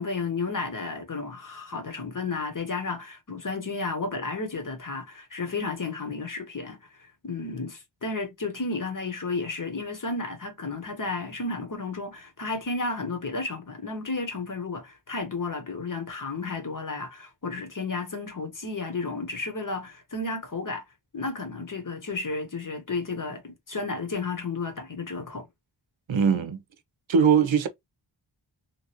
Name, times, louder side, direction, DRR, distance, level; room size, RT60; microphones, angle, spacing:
voice 1, 0.0-20.8 21.1-25.5, left 3 dB, 45° left, 0.9 m, -32 dB
voice 2, 26.1-26.6 27.1-27.7, right 6 dB, 75° right, 0.6 m, -21 dB
2.9 x 2.5 x 2.8 m
wide cardioid pair, 60°, 47 cm